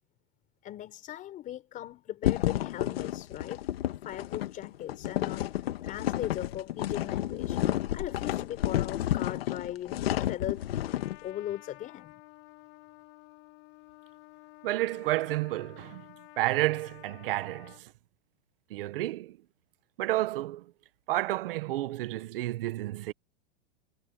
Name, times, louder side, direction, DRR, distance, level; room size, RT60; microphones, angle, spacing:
voice 1, 0.6-3.7 4.0-7.6 7.9-10.7 11.2-12.2, left 12 dB, 25° left, 4.8 m, -39 dB
sound 1, 2.2-11.2, left 13 dB, 85° left, 1.8 m, -31 dB
Trumpet, 10.7-17.8, left 34 dB, 45° left, 5.6 m, -53 dB
voice 2, 14.6-16.0 16.4-17.8 18.7-19.4 20.0-20.6 21.1-23.1, right 16 dB, 70° right, 1.4 m, -30 dB
supercardioid pair, 155°, 29 cm